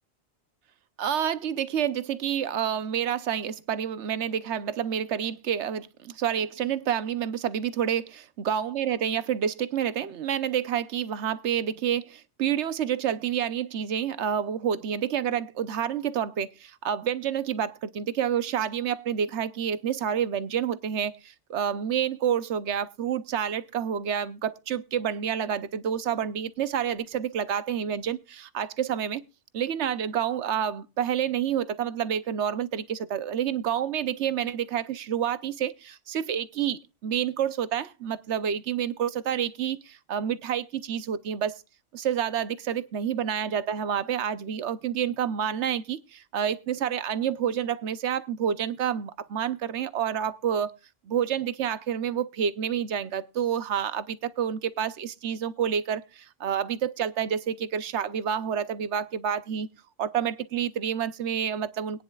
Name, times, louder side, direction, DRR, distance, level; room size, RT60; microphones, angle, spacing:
voice 1, 1.0-29.2 29.5-41.6 41.9-50.8 51.1-59.7 60.0-62.0, right 9 dB, 80° right, 1.1 m, -28 dB
22.0 x 10.0 x 2.3 m
omnidirectional pair, 1.2 m